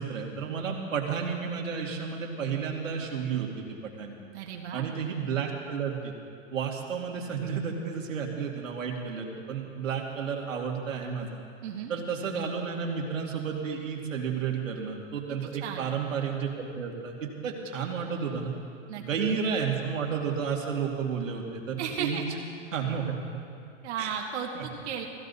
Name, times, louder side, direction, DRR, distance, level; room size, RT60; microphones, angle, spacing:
voice 1, 0.0-3.6 4.0-4.1 4.7-6.1 6.5-11.3 11.9-18.5 18.9-22.3 22.7-23.2 24.0-24.1 24.5-24.6, right 6 dB, 85° right, 0 dB, 2.4 m, -32 dB
voice 2, 4.3-4.8 11.6-11.9 15.6-16.0 18.9-19.0 21.8-22.2 23.8-25.1, right 7 dB, 60° right, 1 dB, 1.6 m, -34 dB
17.5 x 15.5 x 4.2 m, 2.4 s
hypercardioid pair, 145°, 38 cm